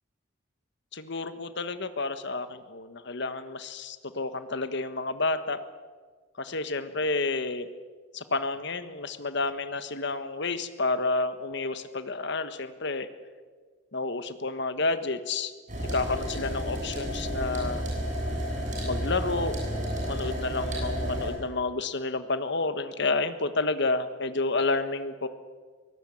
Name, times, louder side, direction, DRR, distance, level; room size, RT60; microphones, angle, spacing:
voice 1, 0.9-5.6 6.4-7.7 8.1-13.1 13.9-15.5 15.9-17.8 18.8-19.5 20.1-25.3, left 3 dB, 60° left, 10 dB, 1.4 m, -30 dB
sound 1, 15.7-21.3, equal, 40° right, 8.0 m, -31 dB
23.0 x 18.0 x 8.6 m, 1.5 s
head